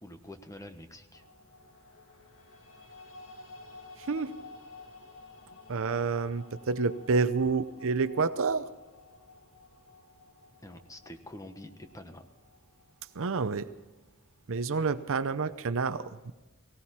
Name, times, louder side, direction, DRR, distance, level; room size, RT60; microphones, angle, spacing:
voice 1, 0.0-1.2 10.6-12.2, left 1 dB, 15° left, 7 dB, 1.2 m, -46 dB
sound 1, 1.1-13.4, left 3 dB, 65° left, 1.9 m, -53 dB
voice 2, 4.0-4.4 5.7-8.7 13.1-13.7 14.5-16.3, right 4 dB, 65° right, 13 dB, 0.7 m, -29 dB
18.5 x 17.0 x 4.3 m, 1.2 s
head